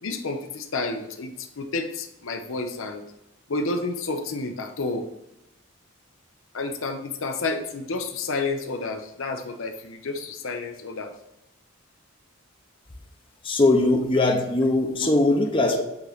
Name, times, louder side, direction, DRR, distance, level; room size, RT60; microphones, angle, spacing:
voice 1, 0.0-3.0 3.5-5.1 6.5-11.1 15.0-15.1, left 3 dB, 70° left, 6 dB, 0.7 m, -30 dB
voice 2, 13.4-15.8, left 2 dB, 25° left, 2 dB, 0.7 m, -20 dB
8.4 x 3.2 x 3.9 m, 0.90 s
head